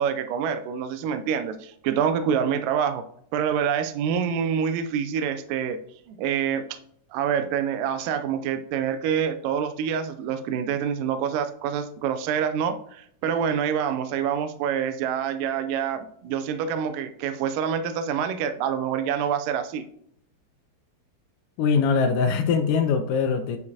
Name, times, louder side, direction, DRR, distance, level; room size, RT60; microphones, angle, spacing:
voice 1, 0.0-5.8 6.1-6.8 7.1-19.9, right 8 dB, 80° right, 10 dB, 2.1 m, -26 dB
voice 2, 21.6-23.6, left 5 dB, 80° left, 6 dB, 2.1 m, -22 dB
9.5 x 4.7 x 2.8 m, 0.66 s
omnidirectional pair, 4.0 m